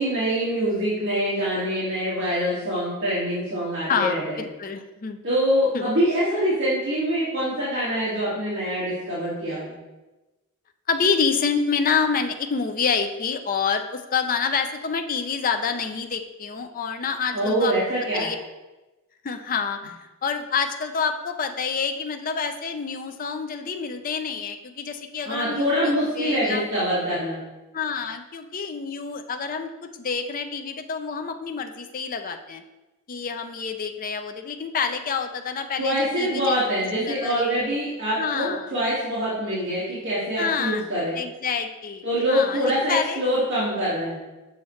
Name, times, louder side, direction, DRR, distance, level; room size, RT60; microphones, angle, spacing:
voice 1, 0.0-4.4 5.2-9.7 17.3-18.3 25.3-27.4 35.8-41.1 42.0-44.2, equal, 55° right, -9 dB, 2.0 m, -24 dB
voice 2, 3.9-5.2 5.7-5.9 10.9-17.7 18.1-18.4 19.2-26.7 27.7-32.6 33.1-36.6 36.9-37.5 38.2-38.7 40.4-40.8 41.1-43.2, left 5 dB, 40° left, 7 dB, 0.5 m, -27 dB
7.0 x 6.0 x 3.1 m, 1.1 s
head